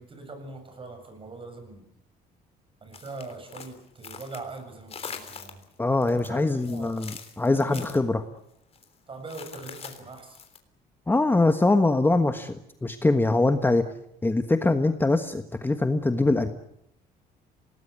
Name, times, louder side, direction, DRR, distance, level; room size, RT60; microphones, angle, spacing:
voice 1, 0.0-1.9 2.8-5.6 6.3-7.0 7.5-7.9 9.1-10.4, right 3 dB, 30° right, 8 dB, 7.2 m, -41 dB
sound 1, 2.9-4.6 4.9-5.7 6.0-8.0 8.7-8.9 9.3-10.6, left 6 dB, 35° left, 3.4 m, -43 dB
voice 2, 5.8-8.2 11.1-13.8 14.2-16.5, left 2 dB, 10° left, 8 dB, 1.4 m, -23 dB
26.5 x 19.0 x 8.2 m, 0.74 s
cardioid pair, 110°, 17 cm